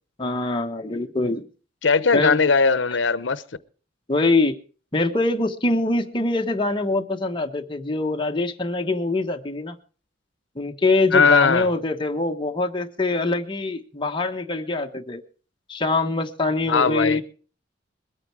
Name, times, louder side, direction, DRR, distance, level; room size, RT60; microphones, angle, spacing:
voice 1, 0.2-1.5 2.1-2.4 4.1-4.6 4.9-9.8 10.5-15.2 15.7-17.2, left 2 dB, 25° left, 1.3 m, -24 dB
voice 2, 1.8-3.4 11.1-11.7 16.7-17.2, left 5 dB, 75° left, 0.8 m, -19 dB
21.5 x 8.9 x 4.7 m
head